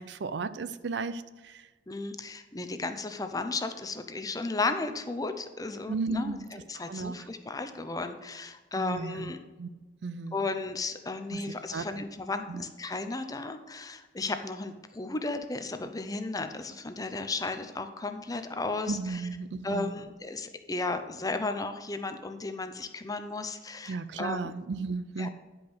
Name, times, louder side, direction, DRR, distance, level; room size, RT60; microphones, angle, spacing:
voice 1, 0.0-1.7 5.9-6.5 6.9-7.3 8.7-9.3 9.6-9.7 10.0-10.4 11.3-11.4 11.7-12.0 12.5-12.6 18.9-19.9 23.9-25.3, right 4 dB, 70° right, 13 dB, 0.5 m, -34 dB
voice 2, 1.9-9.4 10.3-19.2 19.6-24.5 25.2-25.3, left 3 dB, 20° left, 8 dB, 0.6 m, -34 dB
10.5 x 5.3 x 6.1 m, 1.2 s
head